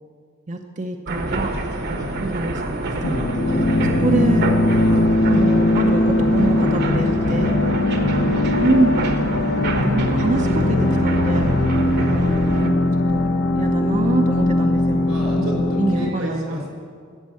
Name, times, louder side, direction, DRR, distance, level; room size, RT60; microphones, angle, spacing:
voice 1, 0.5-1.6 2.2-3.3 3.8-4.5 5.3-7.6 8.6-9.0 9.9-11.6 12.6-13.3 13.6-15.1 15.4-16.6, right 2 dB, 35° right, 3 dB, 0.6 m, -25 dB
sound 1, 1.1-12.7, right 2 dB, 55° right, 1.1 m, -27 dB
sound 2, 3.0-16.1, left 2 dB, 60° left, 0.7 m, -20 dB
voice 2, 14.9-16.7, equal, 90° right, -1 dB, 3.9 m, -32 dB
14.0 x 7.4 x 8.2 m, 2.1 s
head